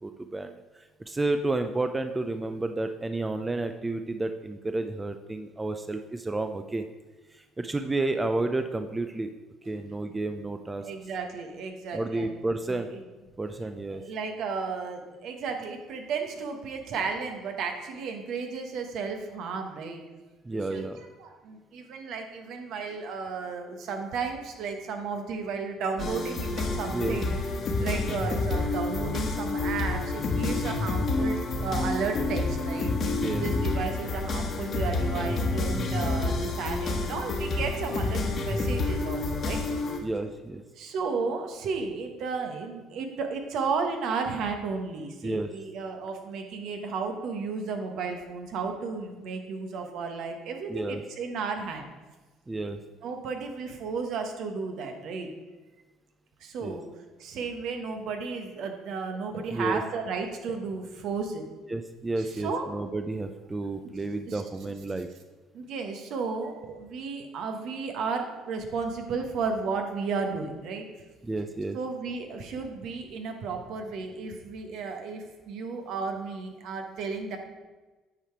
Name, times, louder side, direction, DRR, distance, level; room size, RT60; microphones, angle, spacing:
voice 1, 0.0-6.8 7.3-9.3 9.7-10.9 11.9-12.9 13.4-14.0 20.4-21.0 26.9-27.2 33.2-33.5 40.0-40.6 45.2-45.5 50.7-51.0 52.5-52.8 56.6-56.8 59.5-59.8 61.7-65.1 71.2-71.8, right 2 dB, 20° right, 7 dB, 0.5 m, -31 dB
voice 2, 10.8-12.4 12.7-13.0 13.9-20.0 20.5-27.4 27.8-32.9 33.4-39.6 40.8-51.9 53.0-55.3 56.4-56.9 57.2-61.4 62.2-62.7 64.3-64.4 65.5-70.9 71.7-77.4, right 5 dB, 65° right, 4 dB, 1.2 m, -33 dB
sound 1, 26.0-40.0, left 2 dB, 50° left, 1.5 m, -29 dB
8.8 x 4.9 x 4.6 m, 1.2 s
supercardioid pair, 75°, 0 cm